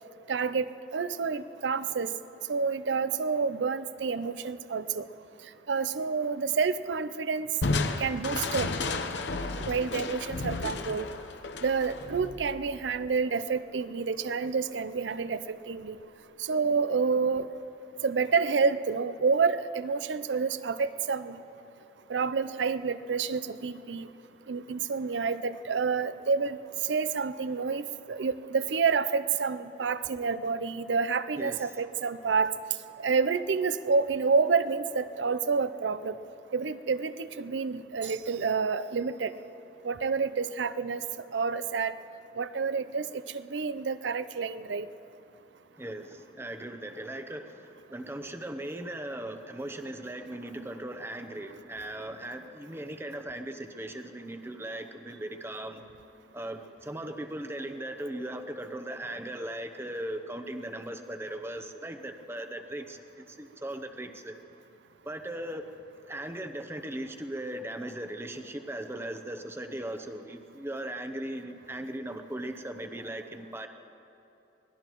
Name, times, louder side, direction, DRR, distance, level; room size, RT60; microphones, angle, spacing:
voice 1, 0.3-2.1 2.5-5.0 5.7-7.5 8.0-8.7 9.5-11.1 11.6-16.0 16.4-17.5 18.0-21.4 22.1-24.1 24.5-26.6 26.8-32.5 33.0-36.2 36.5-39.3 39.8-41.0 41.3-41.9 42.4-44.9, right 5 dB, 85° right, 14 dB, 0.5 m, -29 dB
Crushing, 7.6-13.0, left 3 dB, 75° left, 0.8 m, -33 dB
voice 2, 31.4-31.8 45.8-55.8 56.3-63.0 63.3-64.3 65.0-65.7 66.1-73.7, right 1 dB, 15° right, 8 dB, 0.8 m, -38 dB
25.0 x 18.5 x 3.1 m, 3.0 s
head